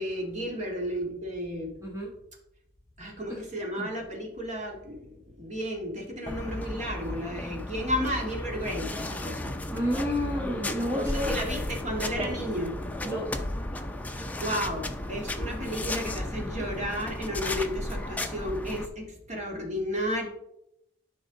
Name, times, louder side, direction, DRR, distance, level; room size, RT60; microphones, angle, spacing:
voice 1, 0.0-1.7 3.0-5.0 5.4-9.5 10.9-12.8 14.1-20.3, equal, 35° right, 0 dB, 2.2 m, -33 dB
voice 2, 1.8-2.1 3.3-3.4 3.8-3.9 9.5-11.3 12.2-12.3 13.0-13.3, equal, 15° right, -3 dB, 1.3 m, -31 dB
sound 1, 6.3-18.9, left 1 dB, 10° left, 0.6 m, -34 dB
12.0 x 5.3 x 3.9 m, 0.81 s
head